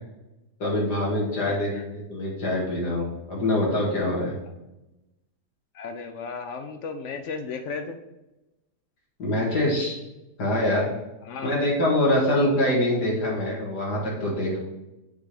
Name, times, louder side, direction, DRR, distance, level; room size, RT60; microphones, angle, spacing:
voice 1, 0.6-4.3 9.2-10.0 10.4-10.9 11.4-14.6, left 1 dB, 85° left, -3 dB, 2.6 m, -24 dB
voice 2, 1.5-1.8 5.7-8.0 11.3-11.6, left 4 dB, 65° left, 6 dB, 0.7 m, -35 dB
6.9 x 3.4 x 5.8 m, 0.98 s
omnidirectional pair, 1.7 m